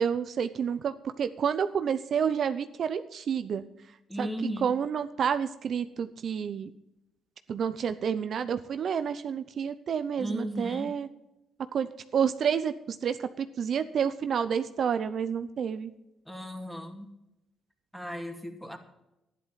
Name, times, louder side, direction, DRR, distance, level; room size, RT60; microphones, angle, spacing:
voice 1, 0.0-3.6 4.2-4.3 4.6-6.7 7.5-11.1 11.7-15.9, right 7 dB, 60° right, 10 dB, 0.7 m, -29 dB
voice 2, 4.1-4.7 10.2-10.9 16.3-17.1 17.9-18.8, equal, 5° left, 4 dB, 2.4 m, -35 dB
12.0 x 11.0 x 5.7 m, 0.89 s
cardioid pair, 90°, 0 cm